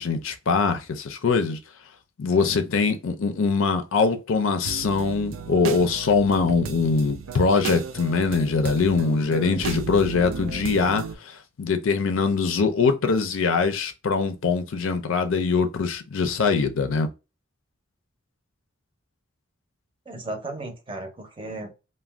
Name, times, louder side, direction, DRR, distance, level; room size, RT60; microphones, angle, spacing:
voice 1, 0.0-1.6 2.2-17.1, left 4 dB, 75° left, 0.5 m, -23 dB
sound 1, 4.6-11.1, right 5 dB, 90° right, 0.4 m, -34 dB
voice 2, 20.1-21.7, right 2 dB, 25° right, 0.6 m, -35 dB
2.4 x 2.2 x 3.2 m
head